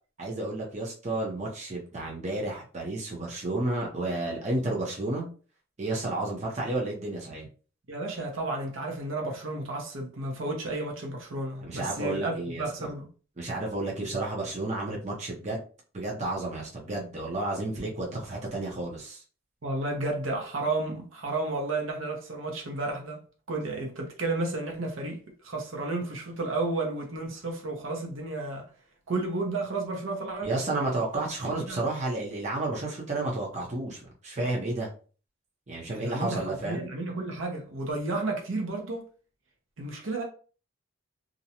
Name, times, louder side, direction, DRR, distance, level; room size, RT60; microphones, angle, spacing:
voice 1, 0.2-5.3 5.8-7.5 11.6-12.9 13.4-15.6 15.9-19.2 30.4-34.9 35.7-36.8, right 2 dB, 35° right, 0.6 m, -31 dB
voice 2, 7.9-13.1 19.6-23.2 23.5-28.7 29.1-30.5 31.6-31.8 35.9-39.0 39.8-40.2, right 2 dB, 70° right, 0.7 m, -32 dB
2.5 x 2.1 x 2.8 m
head